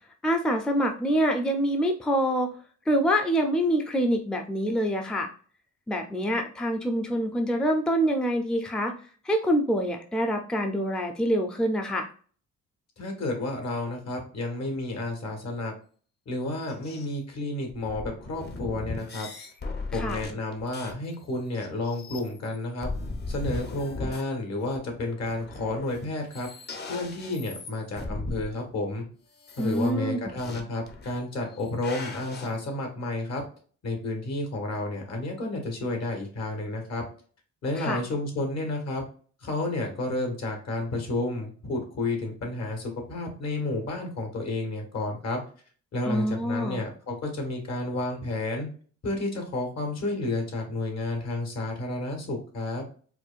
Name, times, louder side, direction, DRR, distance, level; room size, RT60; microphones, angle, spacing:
voice 1, 0.2-2.5 2.9-5.3 5.9-8.9 9.3-12.1 19.9-20.2 29.6-30.2 37.8-38.0 46.1-46.8, equal, 5° left, 4 dB, 0.4 m, -26 dB
voice 2, 13.0-15.7 16.3-19.3 19.9-22.9 23.3-26.5 26.9-29.0 29.6-33.4 33.8-37.0 37.6-39.0 39.4-45.4 45.9-48.7 49.0-52.8, left 2 dB, 60° left, 2 dB, 1.4 m, -31 dB
sound 1, 16.7-17.1 17.7-21.1 21.5-22.6 22.8-24.2 24.7-24.8 25.2-26.0 26.3-28.5 29.4-29.9 30.4-30.6 30.9-31.2 31.5-32.5, left 3 dB, 35° left, 0.7 m, -37 dB
4.5 x 2.3 x 2.4 m, 0.42 s
cardioid pair, 90°, 30 cm